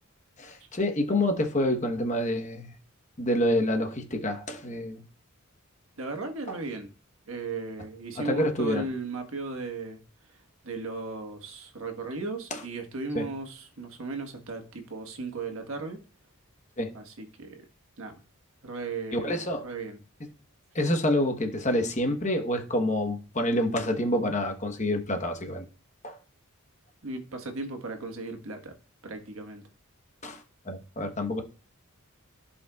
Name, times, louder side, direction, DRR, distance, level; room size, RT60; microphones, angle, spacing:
voice 1, 0.4-2.7 3.2-5.0 6.5-6.6 8.2-8.8 12.5-12.6 13.1-13.3 16.8-16.9 19.1-19.7 20.7-25.7 26.0-26.2 30.2-31.4, left 1 dB, 30° left, 1.1 m, -27 dB
voice 2, 6.0-6.9 7.3-10.0 10.6-16.0 16.9-17.6 18.0-18.2 18.6-20.0 27.0-28.7 29.0-29.6, right 3 dB, 75° right, 1.5 m, -36 dB
14.5 x 5.5 x 2.4 m
head